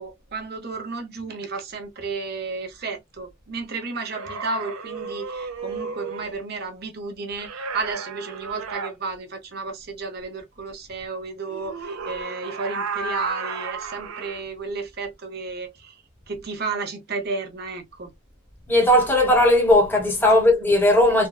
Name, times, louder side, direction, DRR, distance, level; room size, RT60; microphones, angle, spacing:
voice 1, 0.0-15.9 16.3-18.1 20.3-20.4 21.1-21.2, right 4 dB, 50° right, 0.7 m, -32 dB
sound 1, 3.9-6.4 7.4-8.9 11.5-14.4, right 4 dB, 85° right, 0.6 m, -33 dB
voice 2, 18.7-21.3, left 1 dB, 10° left, 1.0 m, -17 dB
3.4 x 2.2 x 2.3 m
head